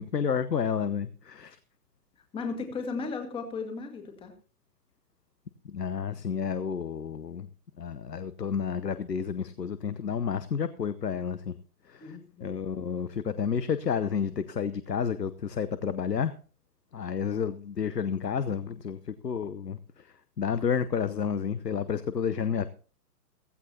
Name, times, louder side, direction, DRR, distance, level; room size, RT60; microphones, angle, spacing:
voice 1, 0.0-1.6 5.6-7.5 7.8-11.5 11.9-16.3 16.9-20.1 20.4-22.7, left 7 dB, 75° left, 14 dB, 0.9 m, -30 dB
voice 2, 2.3-4.3 12.0-12.5, left 4 dB, 10° left, 5 dB, 1.8 m, -35 dB
15.5 x 15.5 x 2.8 m, 0.39 s
figure-of-eight pair, 125°, 50 cm